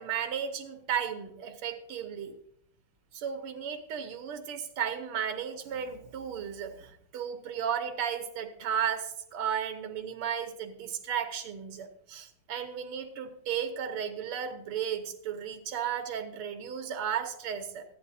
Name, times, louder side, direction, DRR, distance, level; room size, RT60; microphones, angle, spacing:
voice 1, 0.0-2.4 3.1-17.9, right 8 dB, 85° right, 6 dB, 1.9 m, -34 dB
15.0 x 10.5 x 2.7 m, 0.69 s
omnidirectional pair, 2.4 m